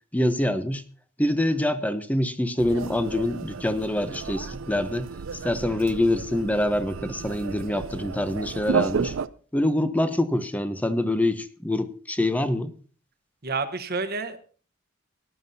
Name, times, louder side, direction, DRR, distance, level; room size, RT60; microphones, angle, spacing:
voice 1, 0.1-0.8 1.2-9.1 9.5-12.7, left 1 dB, 10° left, 11 dB, 0.7 m, -25 dB
sound 1, 2.6-9.3, right 5 dB, 70° right, 0.5 m, -32 dB
voice 2, 13.4-14.4, right 4 dB, 50° right, 10 dB, 1.1 m, -29 dB
18.0 x 11.0 x 2.7 m, 0.40 s
head